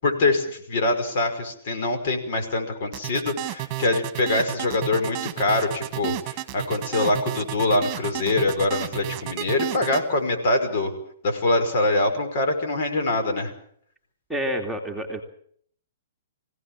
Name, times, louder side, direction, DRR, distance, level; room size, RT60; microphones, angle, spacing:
voice 1, 0.0-10.9 11.2-13.5, left 2 dB, 55° left, 6 dB, 5.6 m, -24 dB
sound 1, 2.9-10.0, right 16 dB, 30° right, 1.7 m, -32 dB
voice 2, 14.3-15.2, equal, ahead, -1 dB, 2.6 m, -28 dB
25.0 x 17.0 x 7.6 m, 0.63 s
hypercardioid pair, 140°, 0 cm